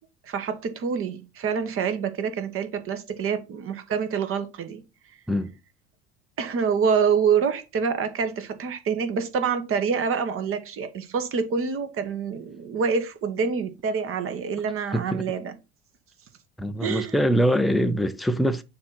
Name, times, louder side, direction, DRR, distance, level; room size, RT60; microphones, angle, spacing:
voice 1, 0.2-4.8 6.4-15.5 16.8-17.2, right 6 dB, 35° right, 1.3 m, -26 dB
voice 2, 14.9-15.2 16.6-18.6, equal, ahead, 0.4 m, -23 dB
6.8 x 2.7 x 5.7 m
figure-of-eight pair, 70°, 36 cm